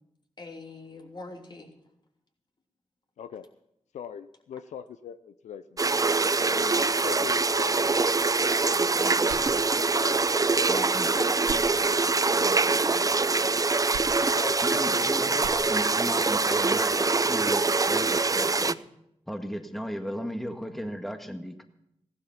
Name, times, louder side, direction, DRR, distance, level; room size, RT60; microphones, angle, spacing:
voice 1, 0.4-1.7 6.4-6.6 8.7-9.5 10.7-13.1, left 2 dB, 40° left, 2 dB, 3.1 m, -42 dB
voice 2, 3.2-3.5 3.9-6.0 6.5-8.2 9.9-10.6 14.2-15.5, left 8 dB, 80° left, 12 dB, 0.5 m, -41 dB
sound 1, 5.8-18.7, right 3 dB, 30° right, 0.5 m, -24 dB
sound 2, 9.2-10.2 10.6-10.7 11.3-12.4 13.9-15.0 15.3-16.2, right 7 dB, 85° right, 0.7 m, -43 dB
voice 3, 10.7-11.1 14.6-18.8 19.3-21.6, equal, ahead, 6 dB, 1.7 m, -35 dB
15.5 x 12.0 x 5.8 m, 0.80 s
supercardioid pair, 40°, 12 cm